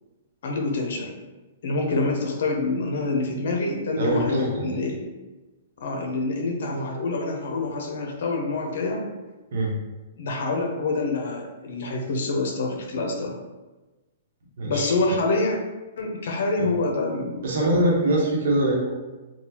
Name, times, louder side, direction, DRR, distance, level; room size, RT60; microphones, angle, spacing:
voice 1, 0.4-1.1 1.6-5.0 5.8-9.0 10.2-13.3 14.6-15.6 16.0-17.4, left 3 dB, 65° left, 2 dB, 0.7 m, -26 dB
voice 2, 4.0-4.8 9.5-9.7 14.6-14.9 16.6-16.7 17.4-18.9, right 1 dB, 70° right, -2 dB, 1.0 m, -23 dB
3.9 x 2.4 x 2.9 m, 1.2 s
hypercardioid pair, 155°, 0 cm